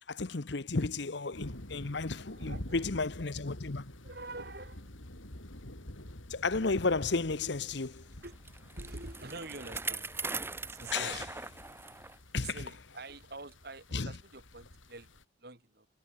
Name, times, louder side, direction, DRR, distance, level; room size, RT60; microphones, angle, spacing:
voice 1, 0.1-3.8 6.3-8.0 10.9-11.2 12.3-12.6 13.9-14.1, left 3 dB, 65° left, 1.0 m, -33 dB
sound 1, 1.3-15.2, left 1 dB, 85° left, 4.1 m, -48 dB
voice 2, 2.3-2.9 4.0-4.9 8.2-8.4 8.8-10.2 10.7-11.3 12.4-15.9, right 3 dB, 50° right, 2.9 m, -46 dB
Bicycle, 8.2-12.2 12.6-12.7 13.5-13.6, right 3 dB, 10° right, 1.6 m, -40 dB
head